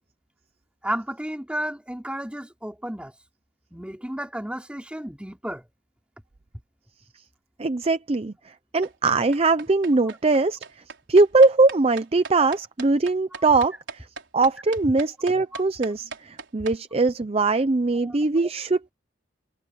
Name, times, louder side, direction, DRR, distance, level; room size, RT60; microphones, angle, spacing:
voice 1, 0.8-3.1 3.7-5.6 12.4-12.5 15.5-15.6 18.0-18.2, right 1 dB, 5° right, 3.0 m, -32 dB
voice 2, 7.6-10.6 11.1-14.1 14.3-18.9, right 3 dB, 30° right, 0.6 m, -21 dB
sound 1, 8.8-16.8, right 4 dB, 80° right, 4.0 m, -39 dB
head